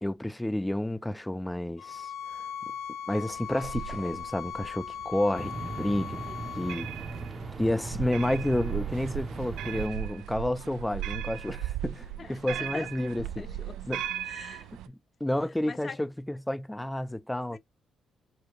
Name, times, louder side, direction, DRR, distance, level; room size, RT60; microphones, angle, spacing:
voice 1, 0.0-2.4 3.1-6.2 6.6-6.9 7.6-13.5 13.9-14.0 14.9-17.6, left 1 dB, 5° left, 0.4 m, -30 dB
sound 1, 1.8-6.8, left 8 dB, 85° left, 0.6 m, -39 dB
sound 2, 3.3-14.9, right 11 dB, 85° right, 0.3 m, -38 dB
sound 3, 5.4-9.9, right 3 dB, 35° right, 0.8 m, -39 dB
voice 2, 12.2-12.9 13.4-13.8 14.2-14.7 15.6-16.0 17.5-17.6, left 5 dB, 40° left, 0.7 m, -42 dB
4.6 x 2.4 x 3.1 m
cardioid pair, 90°, 0 cm